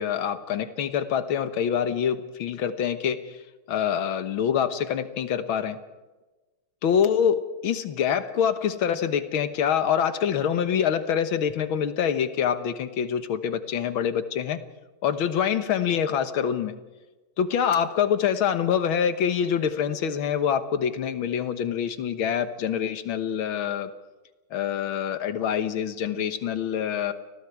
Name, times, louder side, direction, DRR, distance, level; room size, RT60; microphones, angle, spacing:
voice 1, 0.0-5.8 6.8-14.6 15.0-16.7 17.4-23.9 24.5-27.1, left 8 dB, 75° left, 10 dB, 2.0 m, -25 dB
29.5 x 20.0 x 4.8 m, 1.2 s
omnidirectional pair, 2.3 m